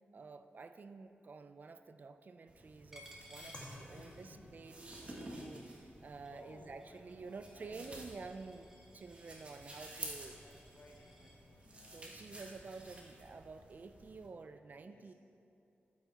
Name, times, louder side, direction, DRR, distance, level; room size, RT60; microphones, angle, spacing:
voice 1, 0.1-10.4 11.9-15.1, right 4 dB, 45° right, 10 dB, 0.4 m, -50 dB
sound 1, 2.5-14.3, right 1 dB, 30° right, 1.4 m, -52 dB
Coin (dropping), 2.9-4.4 4.8-11.4, equal, 10° right, 1.2 m, -61 dB
sound 2, 3.5-12.4, left 1 dB, 30° left, 1.5 m, -61 dB
voice 2, 3.6-4.7 6.3-8.0 10.4-12.6 14.8-15.1, left 2 dB, 65° left, 0 dB, 1.3 m, -61 dB
12.5 x 5.7 x 4.6 m, 2.8 s
wide cardioid pair, 110°, 4 cm